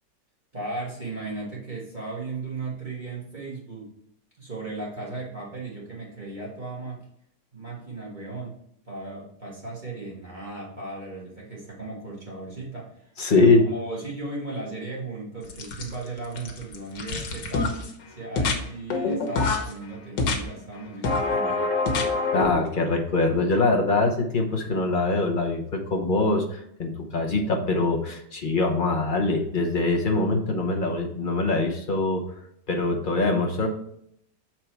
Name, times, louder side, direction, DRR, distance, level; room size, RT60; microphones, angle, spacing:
voice 1, 0.5-3.9 4.4-7.0 7.5-8.6 8.8-21.7, right 2 dB, 25° right, -5 dB, 1.7 m, -36 dB
voice 2, 13.2-13.6 22.3-32.3 32.7-33.7, left 3 dB, 40° left, 2 dB, 0.8 m, -23 dB
sound 1, 15.5-16.1 16.4-17.9 18.4-18.6 18.9-19.7 20.2-20.4 21.0-22.5, left 3 dB, 80° left, 1.7 m, -25 dB
6.7 x 4.5 x 4.5 m, 0.72 s
omnidirectional pair, 1.9 m